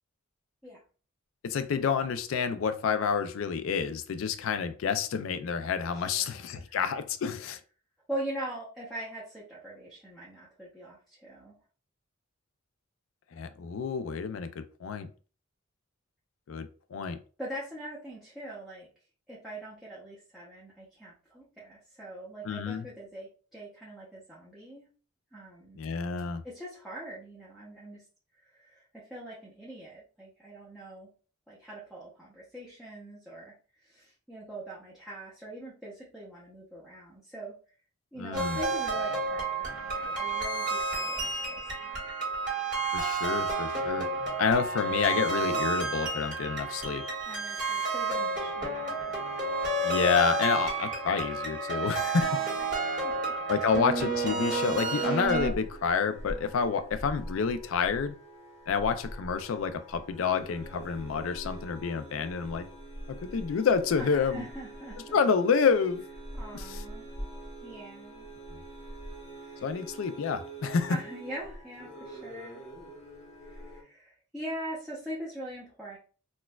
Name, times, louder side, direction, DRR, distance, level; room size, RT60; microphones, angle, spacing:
voice 1, 1.4-7.6 13.3-15.1 16.5-17.2 22.4-22.9 25.8-26.4 38.2-38.6 42.9-44.1 44.4-47.1 49.8-52.4 53.5-58.1 58.7-62.7 63.1-64.4 65.1-66.0 66.5-66.8 69.6-71.0, left 6 dB, 75° left, 0.4 m, -29 dB
voice 2, 5.9-6.6 8.1-11.5 17.4-18.9 19.3-24.9 25.3-25.8 26.4-28.0 28.4-31.1 31.5-37.5 38.1-42.0 47.3-49.3 52.2-52.5 52.8-53.7 64.0-65.2 66.3-67.1 67.6-68.3 69.4-69.8 70.9-72.6 73.4-76.0, right 1 dB, ahead, 0.7 m, -42 dB
sound 1, 38.3-55.5, right 3 dB, 40° right, 1.5 m, -31 dB
sound 2, 55.2-73.8, right 1 dB, 30° left, 0.8 m, -44 dB
4.2 x 2.3 x 2.3 m
head